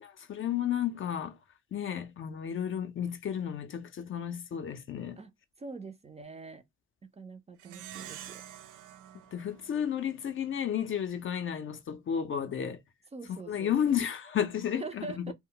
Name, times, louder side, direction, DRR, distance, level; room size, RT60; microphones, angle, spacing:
voice 1, 0.0-1.4 1.7-5.2 9.3-12.8 13.3-15.3, left 9 dB, 45° left, 0.5 m, -32 dB
voice 2, 5.6-6.6 7.1-8.4 13.1-14.0 14.8-15.3, right 3 dB, 20° right, 0.4 m, -43 dB
Plucked string instrument, 7.6-10.4, right 11 dB, 85° right, 0.5 m, -47 dB
2.1 x 2.0 x 3.6 m
cardioid pair, 90°, 30 cm